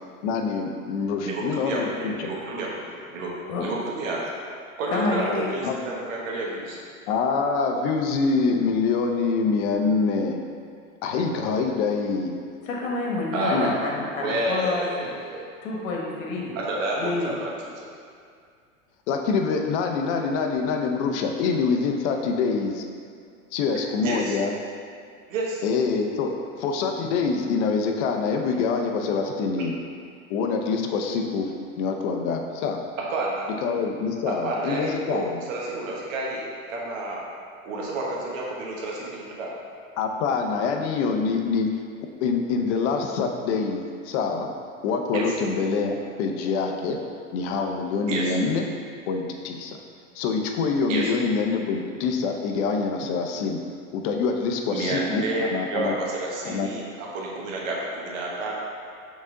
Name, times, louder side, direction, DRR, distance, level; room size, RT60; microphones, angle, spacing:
voice 1, 0.2-2.3 5.6-5.8 7.1-10.4 11.0-12.4 13.5-13.7 19.1-22.8 23.5-24.5 25.6-29.7 30.3-31.5 31.8-32.8 33.6-35.4 40.0-41.8 42.2-44.5 44.8-47.0 47.3-48.6 49.1-49.8 50.1-53.6 53.9-56.0 56.5-56.7, left 4 dB, 60° left, 3 dB, 0.8 m, -25 dB
voice 2, 1.2-4.2 4.8-6.8 13.3-13.7 14.2-15.5 16.5-17.9 24.0-24.4 25.3-25.6 33.0-33.5 34.3-37.2 37.6-39.5 45.1-45.4 48.1-48.4 50.9-51.1 54.7-58.6, right 2 dB, 70° right, -3 dB, 1.4 m, -30 dB
voice 3, 4.9-5.5 12.7-15.1 15.6-16.6 17.0-17.3, left 2 dB, 75° left, -2 dB, 1.5 m, -28 dB
6.1 x 4.1 x 3.8 m, 2.2 s
hypercardioid pair, 105°, 40 cm